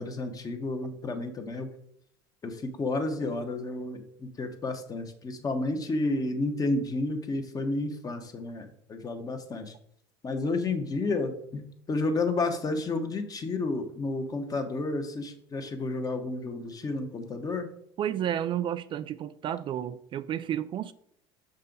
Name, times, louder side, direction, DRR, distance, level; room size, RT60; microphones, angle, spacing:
voice 1, 0.0-1.7 2.4-9.7 10.2-17.7, left 2 dB, 30° left, 1.3 m, -31 dB
voice 2, 18.0-20.9, right 10 dB, 40° right, 0.3 m, -31 dB
6.6 x 5.5 x 3.9 m
supercardioid pair, 95°, 13 cm